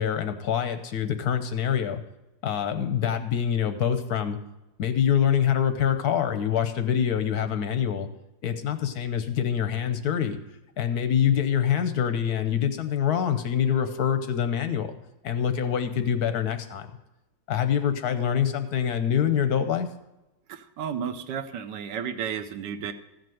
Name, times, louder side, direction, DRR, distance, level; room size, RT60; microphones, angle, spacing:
voice 1, 0.0-2.0 2.4-4.4 4.8-8.1 8.4-10.4 10.8-15.0 15.2-16.9 17.5-19.9, left 8 dB, 65° left, 9 dB, 1.0 m, -25 dB
voice 2, 20.5-22.9, right 8 dB, 65° right, 9 dB, 1.3 m, -33 dB
14.5 x 5.1 x 7.6 m, 0.95 s
omnidirectional pair, 2.3 m